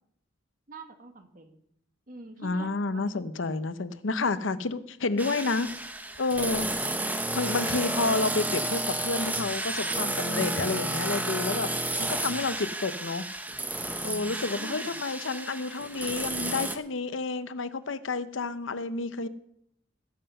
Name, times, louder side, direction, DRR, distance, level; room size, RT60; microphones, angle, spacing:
voice 1, 0.7-1.6 2.1-3.2 14.6-15.0, right 2 dB, 45° right, 6 dB, 1.6 m, -46 dB
voice 2, 2.4-5.7 6.2-6.7 7.3-13.2 14.0-19.3, left 3 dB, 90° left, 13 dB, 0.8 m, -30 dB
sound 1, 5.2-16.8, right 2 dB, 10° right, 0.9 m, -31 dB
19.0 x 7.8 x 5.6 m, 0.74 s
head